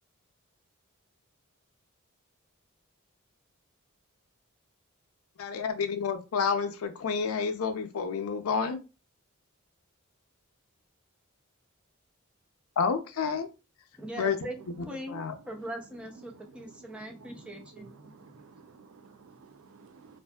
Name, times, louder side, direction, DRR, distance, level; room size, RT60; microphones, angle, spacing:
voice 1, 5.4-8.8 12.8-13.5 14.2-14.4 15.1-15.3, left 5 dB, 90° left, 0.5 m, -29 dB
voice 2, 14.0-18.3, right 1 dB, 5° right, 0.4 m, -41 dB
voice 3, 17.8-20.2, right 5 dB, 75° right, 0.4 m, -54 dB
2.5 x 2.4 x 2.2 m
head